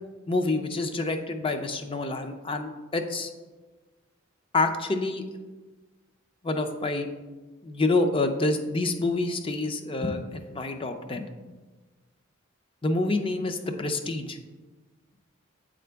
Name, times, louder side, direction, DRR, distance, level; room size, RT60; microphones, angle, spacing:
voice 1, 0.3-3.3 4.5-5.2 6.4-7.1 7.6-11.2 12.8-14.4, left 2 dB, 25° left, 6 dB, 0.5 m, -27 dB
8.8 x 3.8 x 3.4 m, 1.3 s
head